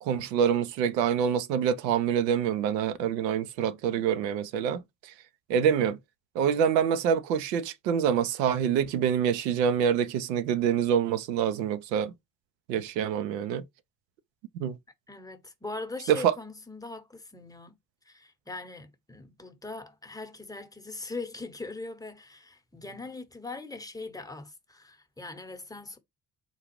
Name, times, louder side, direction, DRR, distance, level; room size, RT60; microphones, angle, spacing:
voice 1, 0.0-5.1 5.5-6.0 6.4-12.1 12.7-13.6 14.5-14.8 16.1-16.3, right 8 dB, 80° right, 0.5 m, -26 dB
voice 2, 5.5-5.9 15.1-17.7 18.0-26.0, left 3 dB, 10° left, 0.8 m, -41 dB
3.9 x 2.3 x 3.0 m
figure-of-eight pair, 40°, 49 cm